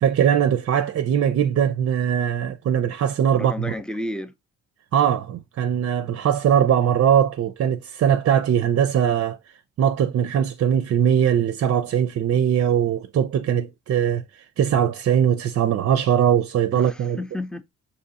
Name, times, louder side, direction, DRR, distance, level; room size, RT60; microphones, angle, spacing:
voice 1, 0.0-3.7 4.9-9.4 9.8-17.2, right 9 dB, 50° right, 0.5 m, -21 dB
voice 2, 3.3-4.3 16.7-17.6, left 1 dB, 5° left, 0.5 m, -31 dB
5.3 x 2.9 x 2.7 m
cardioid pair, 90°, 30 cm